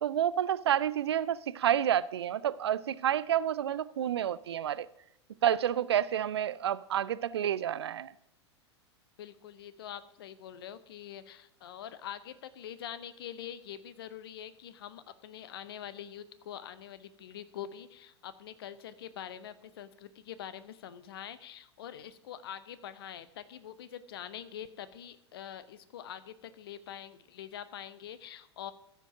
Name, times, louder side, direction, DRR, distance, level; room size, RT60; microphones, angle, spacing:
voice 1, 0.0-4.9 5.4-8.1, right 10 dB, 65° right, 0.4 m, -29 dB
voice 2, 9.2-28.7, left 10 dB, 55° left, 0.8 m, -44 dB
14.5 x 5.1 x 4.8 m
figure-of-eight pair, 90°, 15 cm